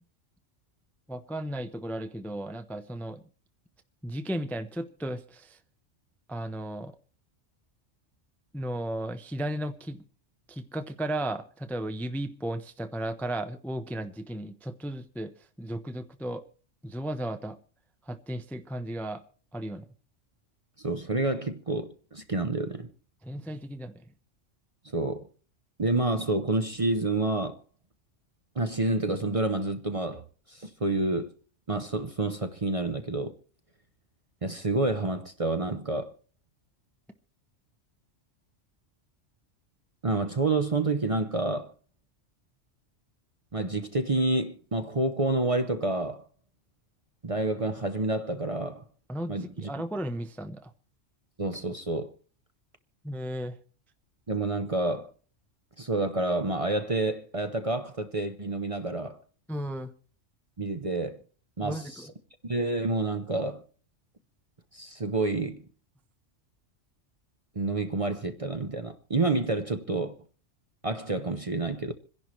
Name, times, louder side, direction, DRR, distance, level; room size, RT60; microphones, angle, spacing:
voice 1, 1.1-3.2 4.0-5.6 6.3-7.0 8.5-10.0 10.5-15.3 15.6-16.4 16.8-17.6 18.1-19.2 19.5-19.9 23.2-24.0 49.1-50.7 53.0-53.6 59.5-59.9 61.6-62.1, right 1 dB, ahead, 0.5 m, -35 dB
voice 2, 20.8-22.9 24.9-25.3 25.8-27.6 28.6-30.2 30.5-31.3 31.7-33.3 34.4-36.1 40.0-41.7 43.5-46.2 47.2-48.8 49.3-49.7 51.4-52.1 54.3-55.1 55.8-59.2 60.6-61.2 61.6-62.0 62.4-63.6 64.7-65.6 67.6-70.1 70.8-71.9, right 2 dB, 35° right, 0.7 m, -28 dB
27.0 x 11.0 x 3.1 m
omnidirectional pair, 1.3 m